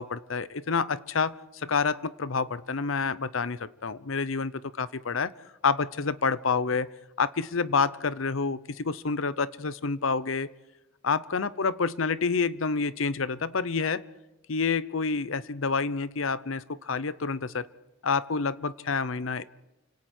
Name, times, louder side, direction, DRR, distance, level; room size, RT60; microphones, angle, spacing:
voice 1, 0.0-4.5 4.8-5.3 5.6-6.9 7.2-10.5 11.0-14.0 14.5-17.7 18.0-19.4, left 5 dB, 80° left, 17 dB, 0.8 m, -28 dB
29.5 x 25.5 x 4.4 m, 1.0 s
head